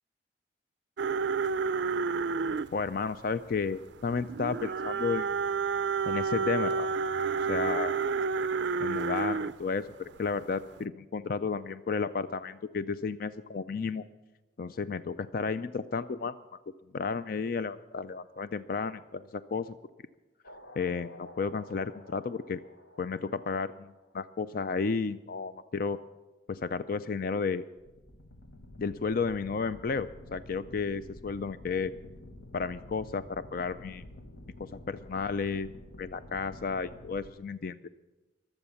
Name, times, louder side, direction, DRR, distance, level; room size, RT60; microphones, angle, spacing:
sound 1, 1.0-9.6 10.1-10.4 10.7-10.8, right 5 dB, 65° right, 0.4 m, -30 dB
voice 1, 2.7-5.3 6.1-6.9 7.5-7.9 8.8-14.0 14.6-16.3 16.9-19.2 19.5-19.7 20.8-22.6 23.0-26.0 26.5-27.6 28.8-31.9 32.5-34.0 34.6-35.7 36.0-37.8, left 5 dB, 50° left, 13 dB, 0.4 m, -32 dB
sound 2, 20.4-24.4 27.8-37.3, left 1 dB, 75° left, 1.3 m, -50 dB
23.0 x 8.0 x 7.0 m, 1.1 s
head